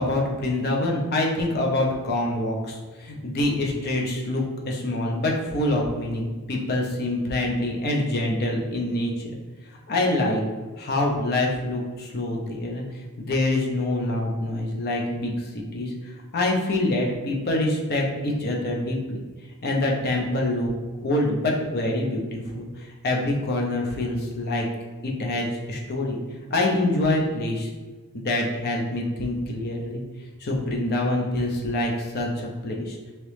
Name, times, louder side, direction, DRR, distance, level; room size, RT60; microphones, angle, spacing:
voice 1, 0.0-9.3 9.9-10.4 10.8-19.2 19.6-20.7 21.0-24.7 25.0-26.2 26.5-27.7 28.1-30.0 30.4-33.0, left 1 dB, 45° left, 0 dB, 0.6 m, -26 dB
3.0 x 2.8 x 3.2 m, 1.3 s
head